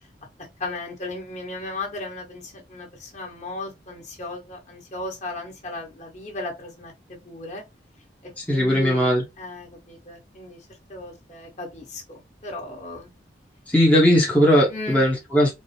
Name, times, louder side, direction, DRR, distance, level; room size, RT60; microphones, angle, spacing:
voice 1, 0.6-7.6 8.2-10.6 10.9-13.1 14.7-15.0, left 2 dB, 40° left, 1.3 m, -36 dB
voice 2, 8.4-9.2 13.7-15.5, equal, 10° left, 0.7 m, -18 dB
4.1 x 2.0 x 3.0 m
head